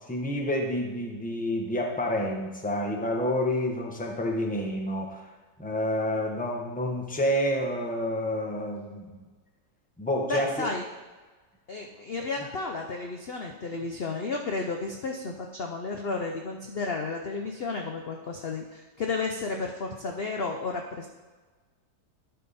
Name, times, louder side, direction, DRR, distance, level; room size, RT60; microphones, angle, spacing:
voice 1, 0.1-5.2 5.6-9.2 10.0-10.7, left 1 dB, 5° left, 1 dB, 0.9 m, -29 dB
voice 2, 10.2-10.8 11.7-21.1, left 3 dB, 50° left, 2 dB, 0.7 m, -32 dB
11.5 x 5.7 x 4.2 m, 1.3 s
omnidirectional pair, 1.7 m